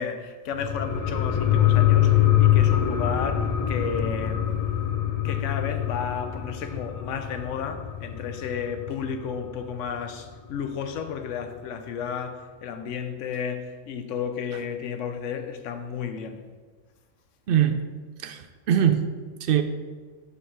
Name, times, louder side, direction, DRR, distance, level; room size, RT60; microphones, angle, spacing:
voice 1, 0.0-4.4 5.2-16.4, left 6 dB, 80° left, 1.0 m, -33 dB
sound 1, 0.5-9.6 10.0-10.1, left 11 dB, 40° left, 0.5 m, -24 dB
voice 2, 17.5-17.8 18.2-19.1 19.4-19.6, right 9 dB, 60° right, 0.6 m, -22 dB
6.7 x 5.5 x 4.6 m
omnidirectional pair, 1.3 m